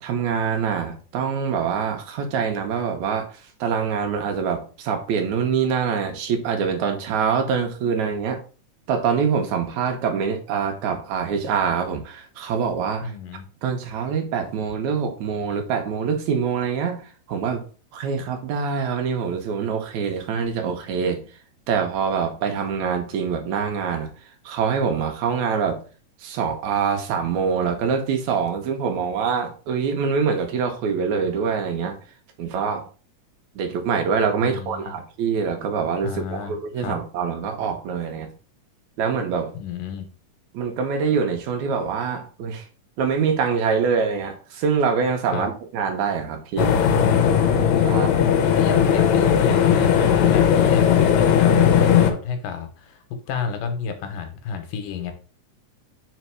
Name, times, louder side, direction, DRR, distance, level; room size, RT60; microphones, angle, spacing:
voice 1, 0.0-8.4 8.9-13.1 13.6-17.6 17.9-21.2 21.7-24.1 24.5-25.8 26.2-32.0 32.4-32.8 33.6-38.3 39.0-39.5 40.5-42.6 43.0-46.8 47.8-48.2, right 6 dB, 70° right, 4 dB, 2.3 m, -24 dB
voice 2, 13.0-13.5 34.4-35.0 36.0-37.1 39.5-40.1 45.3-45.5 47.9-55.1, left 6 dB, 85° left, 6 dB, 2.6 m, -31 dB
sound 1, 46.6-52.1, left 8 dB, 70° left, 2.0 m, -17 dB
5.3 x 4.0 x 4.7 m, 0.37 s
omnidirectional pair, 3.7 m